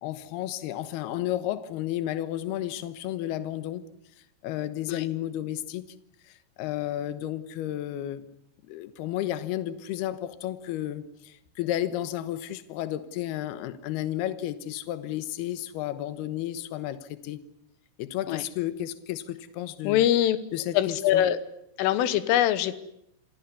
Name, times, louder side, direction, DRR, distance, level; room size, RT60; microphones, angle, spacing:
voice 1, 0.0-3.9 4.4-5.9 6.3-8.3 8.7-17.4 18.0-20.1 20.5-21.2, left 13 dB, 70° left, 12 dB, 2.8 m, -32 dB
voice 2, 19.9-20.4 20.8-21.4 21.8-22.8, left 12 dB, 90° left, 14 dB, 3.7 m, -23 dB
27.0 x 16.5 x 9.7 m, 0.80 s
omnidirectional pair, 5.6 m